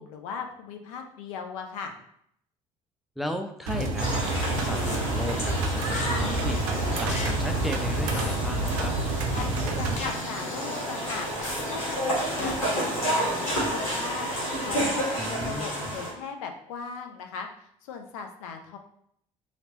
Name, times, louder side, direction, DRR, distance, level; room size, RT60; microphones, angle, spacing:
voice 1, 0.0-2.0 9.7-11.3 11.7-17.5 17.8-18.8, left 6 dB, 70° left, 5 dB, 0.5 m, -38 dB
voice 2, 3.2-8.9 15.2-15.7, equal, ahead, 5 dB, 0.4 m, -35 dB
sound 1, 3.7-3.9 4.8-5.0 5.9-6.1 7.1-7.3 8.1-8.4 9.3-9.4 10.0-10.1 11.4-11.6 12.4-12.5, left 4 dB, 45° left, 0.8 m, -34 dB
sound 2, 3.7-10.0, right 2 dB, 70° right, 0.5 m, -28 dB
sound 3, 4.0-16.1, right 1 dB, 85° left, 1.2 m, -30 dB
2.9 x 2.9 x 2.9 m, 0.69 s
figure-of-eight pair, 55°, 17 cm